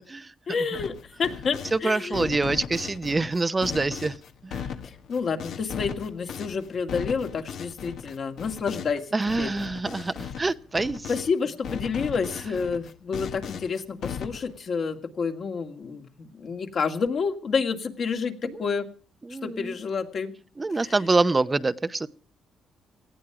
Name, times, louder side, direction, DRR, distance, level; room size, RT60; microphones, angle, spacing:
voice 1, 0.5-2.3 4.8-9.1 9.4-9.5 11.1-18.9 19.3-20.3 20.7-20.9, left 5 dB, 55° left, 5 dB, 2.1 m, -29 dB
sound 1, 0.7-1.8 2.1-11.3 11.6-14.6, left 8 dB, 70° left, 1.3 m, -37 dB
voice 2, 1.7-4.2 4.4-4.7 9.1-11.1 18.4-18.5 19.3-19.7 20.6-22.1, right 3 dB, 20° right, 12 dB, 0.7 m, -26 dB
18.5 x 14.5 x 4.8 m, 0.39 s
cardioid pair, 90°, 0 cm